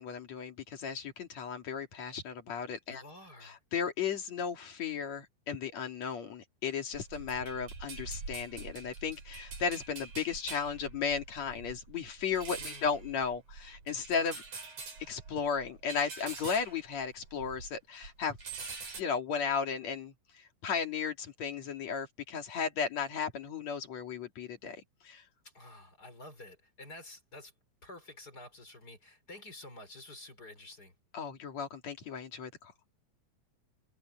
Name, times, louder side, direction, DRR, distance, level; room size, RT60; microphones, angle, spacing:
voice 1, 0.0-3.0 3.4-14.4 15.1-18.4 19.0-20.1 20.6-25.2 31.1-32.5, left 6 dB, 65° left, 3.6 m, -35 dB
voice 2, 2.9-3.6 12.6-13.0 25.4-27.5 27.8-30.9, left 1 dB, 30° left, 5.1 m, -50 dB
sound 1, 6.9-17.8 18.0-19.0, right 4 dB, 80° right, 7.3 m, -45 dB
omnidirectional pair, 3.4 m